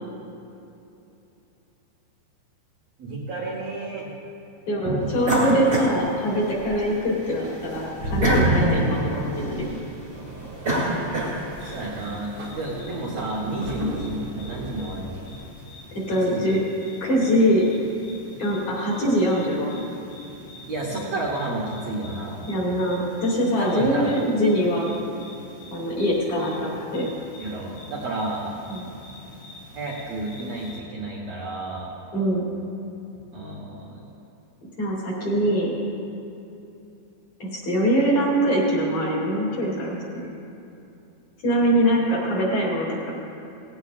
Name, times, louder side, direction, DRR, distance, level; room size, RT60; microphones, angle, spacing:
voice 1, 3.0-4.1 4.8-5.1 11.6-15.2 16.2-16.4 20.7-22.4 23.6-24.1 27.4-28.5 29.7-31.9 33.3-34.0, right 2 dB, 75° right, -4 dB, 1.5 m, -31 dB
voice 2, 4.7-9.8 16.1-16.6 17.0-17.6 18.4-19.8 22.5-24.9 25.7-27.1 28.7-28.9 32.1-32.4 34.8-35.7 37.4-40.3 41.4-43.1, equal, 45° left, -4 dB, 3.2 m, -23 dB
sound 1, 5.2-6.8 7.2-11.8, right 1 dB, 25° right, 1.2 m, -25 dB
sound 2, 10.2-15.5, right 2 dB, 60° right, 1.5 m, -38 dB
sound 3, 11.5-30.8, left 2 dB, 70° left, 5.3 m, -45 dB
18.0 x 17.0 x 2.4 m, 2.9 s
omnidirectional pair, 5.2 m